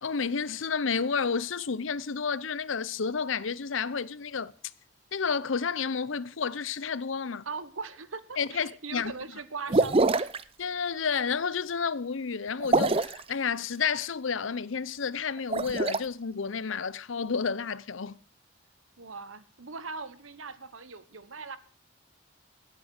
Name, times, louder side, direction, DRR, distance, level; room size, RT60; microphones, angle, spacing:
voice 1, 0.0-4.5 5.1-7.4 8.4-9.1 10.6-18.2, left 5 dB, 75° left, 0.7 m, -31 dB
voice 2, 7.4-10.3 19.0-21.6, right 4 dB, 90° right, 1.3 m, -40 dB
sound 1, 9.7-10.4 12.6-13.2 15.4-16.0, right 3 dB, 30° right, 0.5 m, -24 dB
17.0 x 8.3 x 6.5 m
head